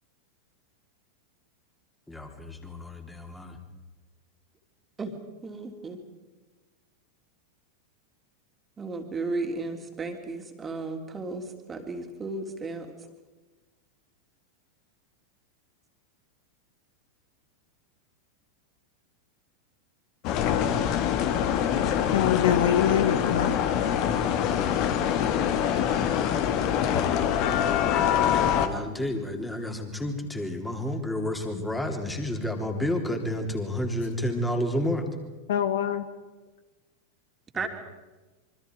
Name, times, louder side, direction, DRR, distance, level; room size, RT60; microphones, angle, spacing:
voice 1, 2.1-3.6 28.3-35.1 37.5-37.7, left 1 dB, 5° left, 4 dB, 3.6 m, -30 dB
voice 2, 5.4-6.0 8.8-12.9 37.5-37.7, right 3 dB, 15° right, 4 dB, 3.3 m, -34 dB
sound 1, 20.2-28.7, left 9 dB, 40° left, 2.0 m, -24 dB
voice 3, 22.1-23.6 35.5-36.1, left 9 dB, 60° left, 11 dB, 1.4 m, -24 dB
26.5 x 24.5 x 4.8 m, 1.2 s
figure-of-eight pair, 90°, 0 cm